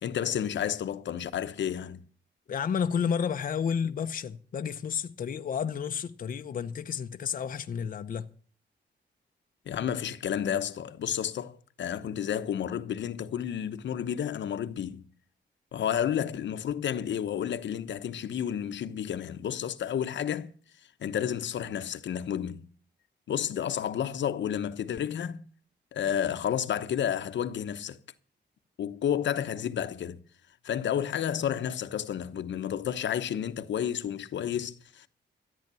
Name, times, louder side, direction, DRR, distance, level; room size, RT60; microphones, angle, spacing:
voice 1, 0.0-2.0 9.7-15.1 15.7-20.5 21.0-22.7 23.3-25.5 25.9-28.0 28.8-30.2 30.6-35.1, left 9 dB, 80° left, 1.0 m, -31 dB
voice 2, 2.5-8.3, left 7 dB, 50° left, 0.7 m, -31 dB
13.5 x 9.5 x 6.9 m
wide cardioid pair, 155°, 19 cm